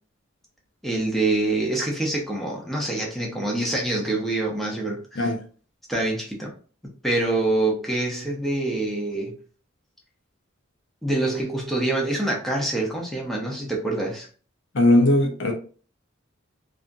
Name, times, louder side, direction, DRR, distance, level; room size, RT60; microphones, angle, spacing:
voice 1, 0.8-5.3 5.9-6.5 7.0-9.4 11.0-14.3, right 2 dB, ahead, 0.6 m, -25 dB
voice 2, 14.7-15.5, left 1 dB, 60° left, 0.7 m, -18 dB
2.7 x 2.4 x 2.5 m
head